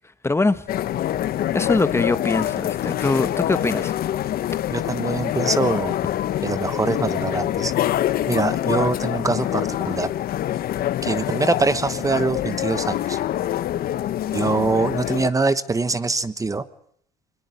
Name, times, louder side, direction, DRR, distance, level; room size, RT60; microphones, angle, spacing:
voice 1, 0.2-0.7 1.5-3.9, left 3 dB, 15° left, 12 dB, 1.1 m, -22 dB
sound 1, 0.7-15.3, left 12 dB, 60° left, 0.9 m, -25 dB
voice 2, 4.7-6.0 6.4-7.7 8.3-10.1 11.0-13.2 14.3-16.7, right 3 dB, 20° right, 13 dB, 1.1 m, -23 dB
23.0 x 21.5 x 8.1 m, 0.66 s
cardioid pair, 110°, 17 cm